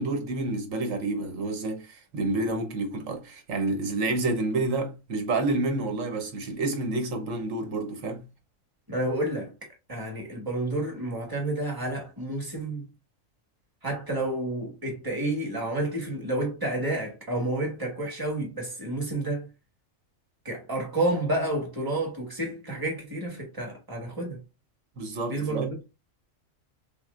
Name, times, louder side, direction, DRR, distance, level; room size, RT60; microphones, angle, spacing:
voice 1, 0.0-8.2 25.0-25.7, right 2 dB, 80° right, 1.4 m, -29 dB
voice 2, 8.9-9.5 9.9-12.9 13.8-19.5 20.4-24.4 25.3-25.8, right 1 dB, 15° right, 1.4 m, -30 dB
5.8 x 2.2 x 2.4 m
omnidirectional pair, 1.3 m